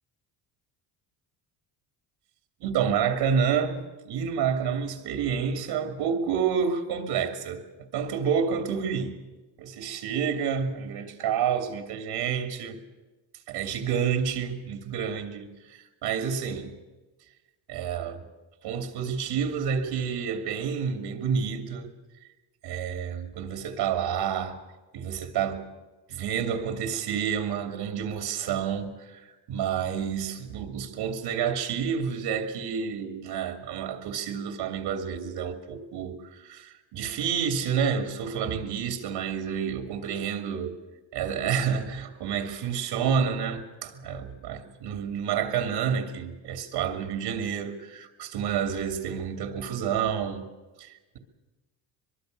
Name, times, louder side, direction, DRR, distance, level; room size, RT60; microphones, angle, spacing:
voice 1, 2.6-7.6 7.9-9.1 9.6-12.8 13.5-16.7 17.7-18.3 18.6-21.9 22.6-24.6 24.9-25.7 26.1-40.8 41.1-50.5 50.8-51.2, right 7 dB, 75° right, 2.8 m, -29 dB
23.0 x 23.0 x 6.7 m
cardioid pair, 110°, 43 cm